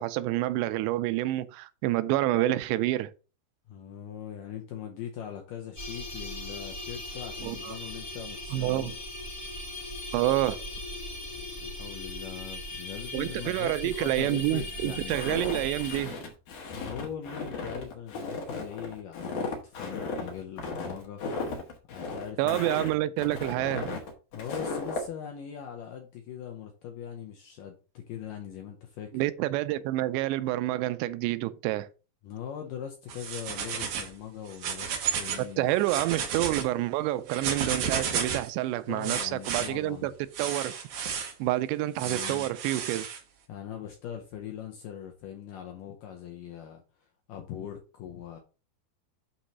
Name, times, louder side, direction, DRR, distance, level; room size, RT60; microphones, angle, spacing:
voice 1, 0.0-3.1 7.4-7.8 8.5-8.9 10.1-10.6 13.1-16.2 22.4-24.0 29.1-31.9 35.6-40.1 40.4-40.7 41.4-43.1, right 15 dB, 90° right, 2.8 m, -28 dB
voice 2, 3.7-9.0 11.4-15.2 16.7-21.2 21.9-22.6 24.3-29.3 32.2-35.7 38.9-40.1 42.0-42.5 43.5-48.4, left 9 dB, 75° left, 2.0 m, -41 dB
sound 1, 5.8-16.0, left 1 dB, 35° left, 0.7 m, -39 dB
Walk footsteps, 15.1-25.1, left 3 dB, 60° left, 2.4 m, -35 dB
sound 2, 33.1-34.1 34.5-35.4 35.8-36.6 37.3-38.5 39.0-39.7 40.3-41.3 42.0-43.2, right 7 dB, 65° right, 2.0 m, -32 dB
8.6 x 3.0 x 5.4 m
omnidirectional pair, 4.9 m